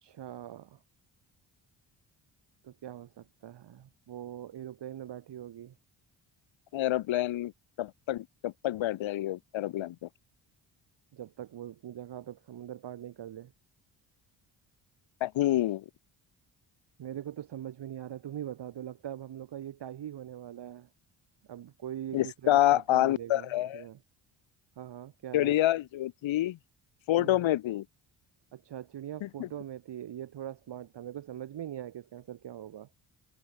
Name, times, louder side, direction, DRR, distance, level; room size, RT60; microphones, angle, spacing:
voice 1, 0.0-0.8 2.6-5.7 11.1-13.5 17.0-20.9 21.5-23.5 23.7-24.0 24.8-25.5 27.2-27.4 28.5-32.9, right 11 dB, 60° right, 1.4 m, -42 dB
voice 2, 6.7-7.5 7.8-10.1 15.2-15.8 22.1-23.8 25.3-26.6 27.1-27.8 29.2-29.5, left 14 dB, 70° left, 1.1 m, -27 dB
cardioid pair, 65°, 48 cm